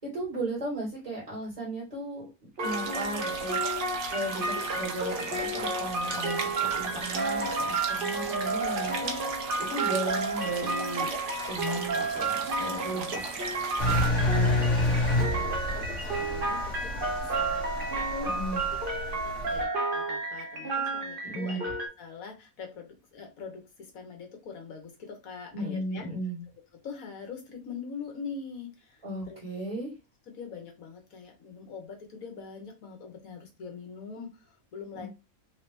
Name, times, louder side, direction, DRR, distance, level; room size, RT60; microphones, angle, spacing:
voice 1, 0.0-2.3 2.6-11.1 11.5-13.5 18.3-18.6 21.2-21.6 25.5-26.4 29.0-29.9 34.9-35.1, right 1 dB, 25° right, -6 dB, 1.9 m, -36 dB
sound 1, 2.6-21.9, right 3 dB, 45° right, 1.0 m, -32 dB
sound 2, 2.6-14.1, right 4 dB, 80° right, 1.3 m, -37 dB
voice 2, 12.6-13.0 13.8-18.4 19.2-26.1 26.8-29.4 30.3-35.1, left 5 dB, 75° left, 3 dB, 1.5 m, -43 dB
Engine, 13.8-19.6, left 1 dB, 45° left, 1.8 m, -29 dB
3.6 x 2.9 x 3.3 m, 0.26 s
omnidirectional pair, 1.5 m